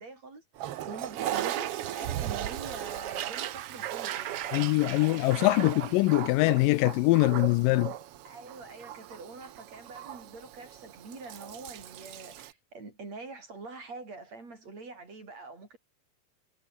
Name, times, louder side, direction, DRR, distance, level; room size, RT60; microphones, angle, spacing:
voice 1, 0.0-4.7 5.0-6.0 8.2-15.8, right 3 dB, 50° right, 7.9 m, -45 dB
Toilet flush, 0.6-12.5, right 12 dB, 70° right, 1.4 m, -37 dB
voice 2, 4.5-7.9, left 20 dB, 85° left, 2.2 m, -23 dB
omnidirectional pair, 3.9 m